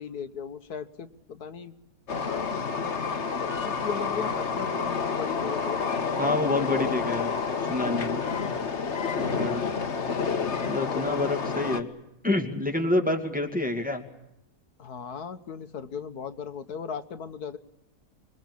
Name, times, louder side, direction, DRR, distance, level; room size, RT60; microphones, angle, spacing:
voice 1, 0.0-1.7 2.2-7.0 8.2-8.6 10.6-11.4 14.8-17.6, left 6 dB, 90° left, 10 dB, 1.8 m, -38 dB
Train, 2.1-11.8, left 5 dB, 50° left, 1.6 m, -29 dB
voice 2, 6.2-7.4 7.7-8.2 9.2-9.8 10.7-11.9 12.2-14.0, left 2 dB, 5° right, 2 dB, 2.3 m, -27 dB
26.0 x 22.5 x 8.4 m, 0.88 s
omnidirectional pair, 1.6 m